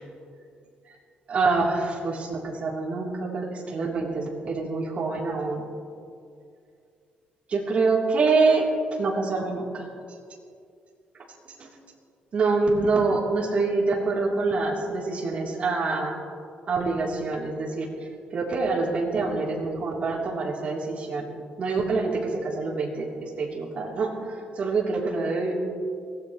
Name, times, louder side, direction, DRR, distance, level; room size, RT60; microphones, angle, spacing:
voice 1, 1.3-5.6 7.5-8.7 9.0-9.9 11.5-11.7 12.3-16.2 16.7-17.9 18.3-21.3 21.6-25.5, right 3 dB, 40° right, -3 dB, 3.3 m, -26 dB
23.0 x 16.5 x 3.1 m, 2.3 s
cardioid pair, 140°, 3 cm